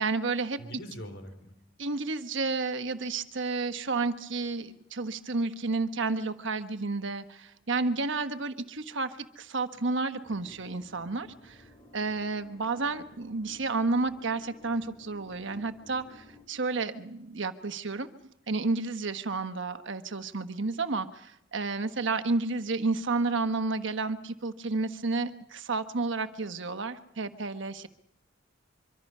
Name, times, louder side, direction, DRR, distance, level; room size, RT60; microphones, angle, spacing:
voice 1, 0.0-0.6 1.8-11.6 11.9-18.1 18.5-27.9, right 3 dB, 65° right, 9 dB, 1.3 m, -31 dB
voice 2, 0.6-1.5, equal, 65° left, 7 dB, 5.0 m, -43 dB
sound 1, 10.2-16.5, left 1 dB, 25° left, 3.2 m, -54 dB
25.0 x 24.5 x 5.6 m, 0.79 s
head